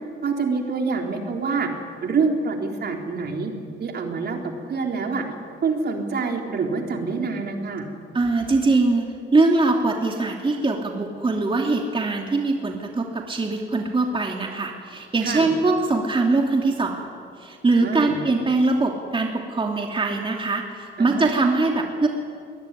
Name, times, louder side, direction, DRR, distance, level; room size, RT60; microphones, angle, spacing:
voice 1, 0.2-1.7 2.0-3.5 3.8-5.2 5.6-7.9 15.2-15.5 17.8-18.2 21.0-21.3, right 4 dB, 55° right, 2 dB, 3.8 m, -26 dB
voice 2, 8.1-17.1 17.4-22.1, right 3 dB, 25° right, 2 dB, 2.8 m, -22 dB
22.5 x 20.5 x 9.9 m, 2.3 s
cardioid pair, 90°, 20 cm